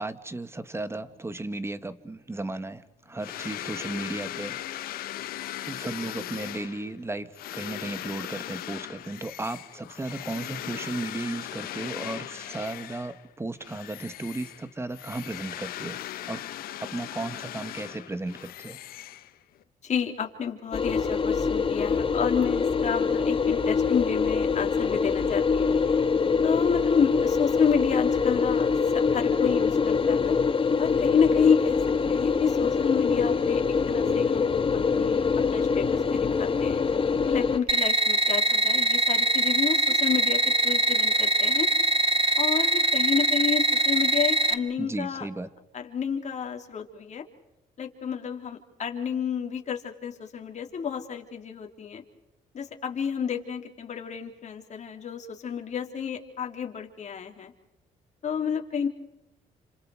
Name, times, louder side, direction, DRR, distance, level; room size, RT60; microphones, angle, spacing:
voice 1, 0.0-4.9 5.7-16.0 16.3-16.4 16.9-18.8 44.8-45.5, right 2 dB, 15° right, 11 dB, 1.9 m, -35 dB
sound 1, 3.2-13.3 13.6-19.6, left 13 dB, 80° left, 1.2 m, -38 dB
voice 2, 19.8-25.8 26.4-30.4 30.8-31.8 32.1-34.6 34.9-35.2 35.5-36.8 37.3-41.7 42.4-45.3 45.7-47.2 47.8-52.0 52.5-57.5 58.2-58.9, left 7 dB, 50° left, 3 dB, 3.8 m, -30 dB
sound 2, 20.7-37.6, left 5 dB, 35° left, 1.8 m, -24 dB
sound 3, 37.7-44.5, right 2 dB, 35° right, 1.5 m, -23 dB
30.0 x 27.0 x 5.0 m, 0.86 s
cardioid pair, 80°, 15 cm